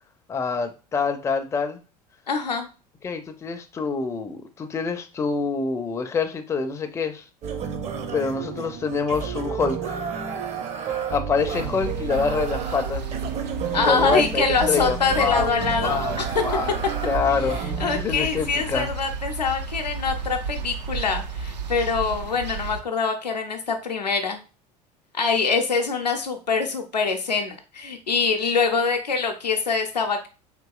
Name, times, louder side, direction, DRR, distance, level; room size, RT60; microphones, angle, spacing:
voice 1, 0.3-1.8 3.0-7.2 8.1-10.1 11.1-13.0 13.7-15.5 15.8-16.2 16.4-16.8 17.0-18.9, left 5 dB, 15° left, 6 dB, 0.4 m, -26 dB
voice 2, 2.3-2.7 13.7-16.2 17.8-24.4 25.1-30.3, left 5 dB, 85° left, 4 dB, 0.6 m, -24 dB
sound 1, 7.4-18.0, right 7 dB, 35° right, 0.5 m, -31 dB
sound 2, 11.4-22.8, right 5 dB, 80° right, 0.5 m, -32 dB
3.7 x 2.8 x 2.3 m, 0.32 s
figure-of-eight pair, 70°, 21 cm